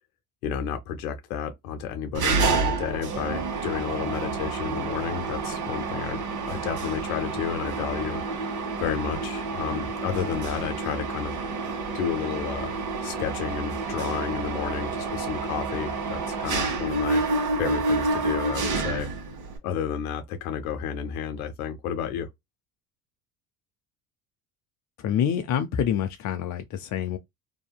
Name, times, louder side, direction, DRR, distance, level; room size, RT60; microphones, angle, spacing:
voice 1, 0.4-8.2 8.8-11.3 11.9-12.7 13.0-17.2 17.6-19.1 19.6-22.3, left 8 dB, 90° left, 0.6 m, -31 dB
Mechanisms, 2.1-19.6, right 3 dB, 45° right, 1.3 m, -29 dB
voice 2, 25.0-27.2, left 9 dB, 45° left, 0.5 m, -26 dB
2.7 x 2.6 x 2.2 m
hypercardioid pair, 70°, 42 cm